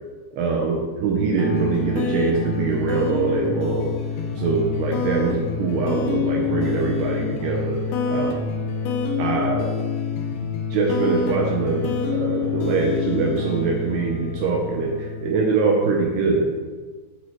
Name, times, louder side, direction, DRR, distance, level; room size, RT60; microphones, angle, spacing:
voice 1, 0.3-3.9 4.4-7.8 8.1-8.4 9.2-9.7 10.4-16.5, right 4 dB, 75° right, 0 dB, 2.5 m, -23 dB
sound 1, 1.4-16.5, left 5 dB, 80° left, 2.2 m, -27 dB
8.4 x 7.6 x 3.0 m, 1.4 s
omnidirectional pair, 5.2 m